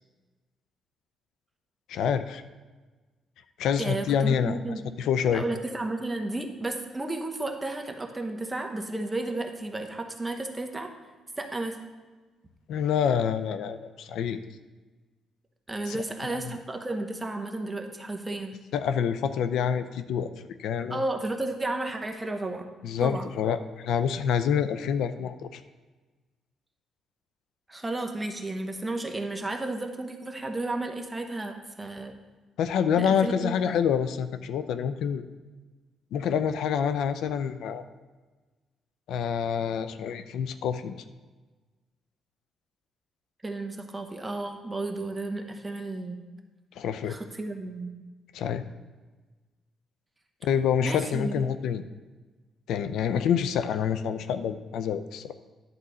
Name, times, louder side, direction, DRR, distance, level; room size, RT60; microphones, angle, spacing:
voice 1, 1.9-2.4 3.6-5.4 12.7-14.4 15.9-16.5 18.7-20.3 20.6-21.0 22.8-25.6 32.6-35.2 36.1-37.8 39.1-41.0 46.8-47.2 48.3-48.6 50.4-51.8 52.7-55.3, left 8 dB, 80° left, 11 dB, 0.4 m, -27 dB
voice 2, 3.8-4.8 5.3-10.9 11.4-11.8 15.7-18.6 20.9-22.7 23.0-23.3 27.7-32.1 33.0-33.7 43.4-46.2 47.0-47.9 50.8-51.4, right 2 dB, 15° right, 4 dB, 0.9 m, -33 dB
10.5 x 4.1 x 6.2 m, 1.3 s
cardioid pair, 120°, 0 cm